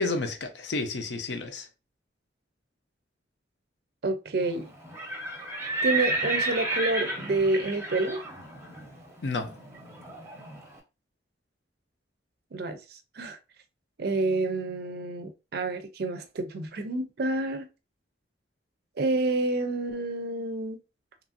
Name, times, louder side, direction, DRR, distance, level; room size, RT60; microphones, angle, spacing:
voice 1, 0.0-1.7 9.2-9.6, left 3 dB, 65° left, 0.6 m, -30 dB
voice 2, 4.0-4.7 5.8-8.2 12.5-13.4 14.0-17.7 19.0-20.8, right 2 dB, 55° right, 0.4 m, -28 dB
Livestock farm animals working animals, 4.8-10.6, right 2 dB, 15° right, 0.6 m, -32 dB
2.9 x 2.5 x 2.5 m
head